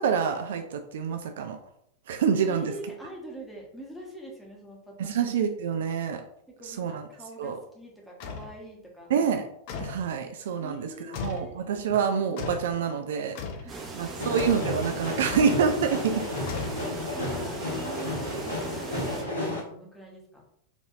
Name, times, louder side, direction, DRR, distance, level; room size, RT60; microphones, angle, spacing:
voice 1, 0.0-1.6 2.1-2.7 5.0-6.2 6.6-7.0 7.4-7.6 9.1-9.5 9.8-10.9 11.2-13.4 13.9-16.3, right 6 dB, 60° right, 5 dB, 0.3 m, -27 dB
voice 2, 2.5-5.3 6.6-9.1 10.6-11.6 13.5-13.8 14.1-14.4 17.1-20.4, right 1 dB, 5° left, -3 dB, 1.0 m, -44 dB
sound 1, 8.2-8.5 9.7-10.1 11.1-11.5 12.4-12.7 13.4-13.7 14.4-14.7 15.3-15.6 16.5-17.1, left 5 dB, 45° left, 0.5 m, -36 dB
sound 2, 13.7-19.2, right 3 dB, 20° right, 0.8 m, -39 dB
sound 3, 14.2-19.6, left 1 dB, 75° left, 1.0 m, -32 dB
4.5 x 2.6 x 2.5 m, 0.73 s
figure-of-eight pair, 90°, 0 cm